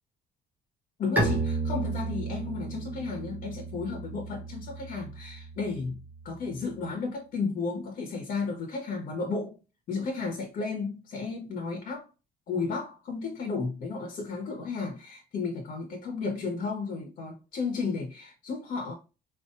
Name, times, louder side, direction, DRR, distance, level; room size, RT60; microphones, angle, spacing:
voice 1, 1.0-6.0 6.2-9.6 9.9-12.1 12.5-18.9, left 4 dB, 60° left, 1.4 m, -33 dB
Bowed string instrument, 1.2-6.7, right 3 dB, 10° right, 1.5 m, -33 dB
5.3 x 3.1 x 2.6 m
cardioid pair, 145°, 16 cm